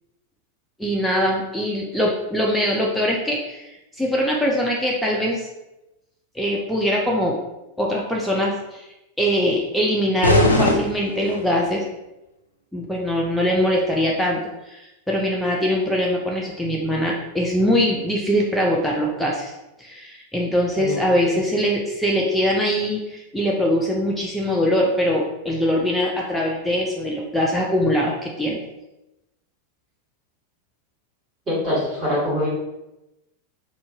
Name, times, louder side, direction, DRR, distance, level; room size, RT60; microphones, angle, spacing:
voice 1, 0.8-5.5 6.3-7.4 7.8-8.9 9.2-11.8 12.7-19.5 19.8-28.6, equal, ahead, -3 dB, 0.3 m, -22 dB
sound 1, 10.2-11.7, left 1 dB, 80° left, 0.4 m, -20 dB
voice 2, 31.5-32.5, left 1 dB, 20° right, -8 dB, 1.4 m, -24 dB
2.5 x 2.1 x 2.7 m, 0.95 s
figure-of-eight pair, 90°, 0 cm